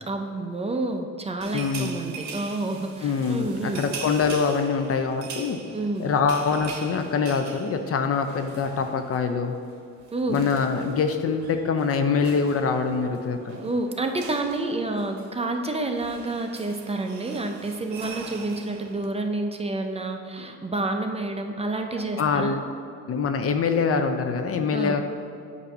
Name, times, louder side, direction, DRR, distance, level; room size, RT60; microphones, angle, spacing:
voice 1, 0.1-3.8 5.7-6.1 10.1-10.4 13.6-22.5 24.7-25.0, right 2 dB, 20° right, 4 dB, 0.5 m, -29 dB
sound 1, 1.4-9.3 9.5-9.7 10.0-19.1, right 5 dB, 70° right, 0.9 m, -42 dB
voice 2, 1.5-2.0 3.0-5.6 6.0-9.5 10.3-13.6 20.4-20.5 22.2-22.7 23.1-25.0, left 5 dB, 50° left, 6 dB, 0.6 m, -24 dB
7.9 x 2.8 x 5.4 m, 2.5 s
cardioid pair, 90°, 30 cm